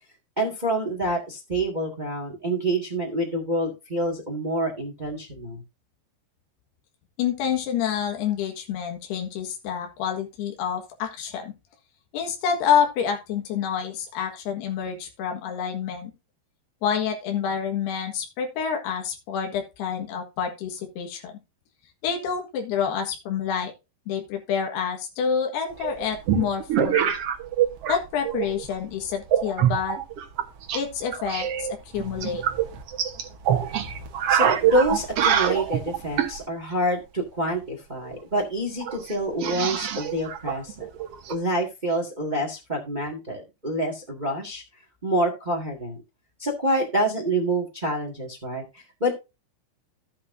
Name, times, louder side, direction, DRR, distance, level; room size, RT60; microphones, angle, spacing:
voice 1, 0.4-5.6 34.3-40.9 41.3-44.6 45.0-46.0 46.4-49.1, right 1 dB, 40° right, 3 dB, 0.6 m, -27 dB
voice 2, 7.2-11.5 12.1-16.1 16.8-21.3 22.0-23.7 24.1-27.1 27.9-30.0 30.7-31.7 31.9-32.4, left 7 dB, 85° left, 3 dB, 3.6 m, -28 dB
sound 1, 25.8-28.0 28.2-28.7 29.3-30.8 31.1-36.4 38.1-38.2 38.3-38.4 38.8-41.3, right 9 dB, 85° right, 1.3 m, -25 dB
13.0 x 8.5 x 2.6 m, 0.26 s
omnidirectional pair, 4.6 m